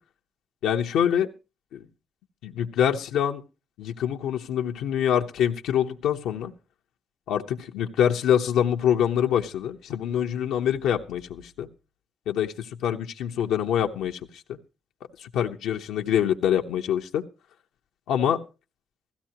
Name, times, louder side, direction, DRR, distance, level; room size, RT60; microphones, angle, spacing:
voice 1, 0.6-1.3 1.7-1.8 2.4-3.4 3.8-6.5 7.3-11.7 12.3-14.2 14.5-14.6 15.2-17.2 18.1-18.4, left 9 dB, 90° left, 3 dB, 0.9 m, -25 dB
16.0 x 14.5 x 2.9 m, 0.30 s
cardioid pair, 90°, 0 cm